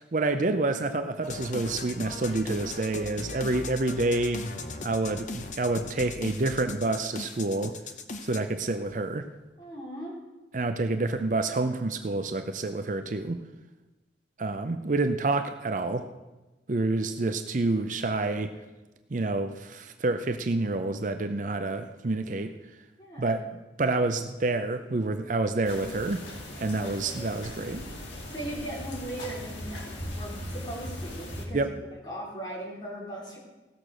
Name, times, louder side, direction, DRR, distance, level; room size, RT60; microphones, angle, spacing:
voice 1, 0.1-4.4 4.8-7.8 8.2-9.3 10.5-13.4 14.4-16.1 16.7-18.5 19.1-22.5 23.2-23.5 23.8-26.2 26.6-27.9 31.5-31.7, right 2 dB, 45° right, 8 dB, 0.6 m, -28 dB
sound 1, 1.2-8.4, left 3 dB, 40° left, 0.8 m, -38 dB
voice 2, 9.6-10.2 23.0-23.4 26.8-27.2 28.3-31.7 32.0-33.4, right 1 dB, 25° left, -3 dB, 3.3 m, -39 dB
sound 2, 25.6-31.4, left 1 dB, 90° left, 2.3 m, -39 dB
16.5 x 6.7 x 6.1 m, 1.1 s
head